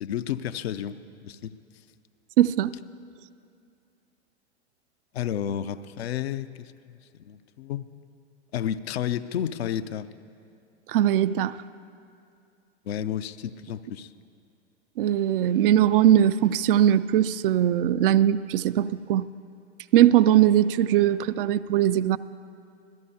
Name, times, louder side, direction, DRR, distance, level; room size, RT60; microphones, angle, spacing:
voice 1, 0.0-1.5 5.1-7.0 7.2-7.9 8.5-10.1 12.9-14.1, left 10 dB, 65° left, 11 dB, 0.6 m, -31 dB
voice 2, 2.4-2.7 10.9-11.6 15.0-19.3 19.9-22.2, right 11 dB, 50° right, 14 dB, 0.5 m, -20 dB
25.5 x 17.0 x 2.8 m, 2.4 s
hypercardioid pair, 100°, 34 cm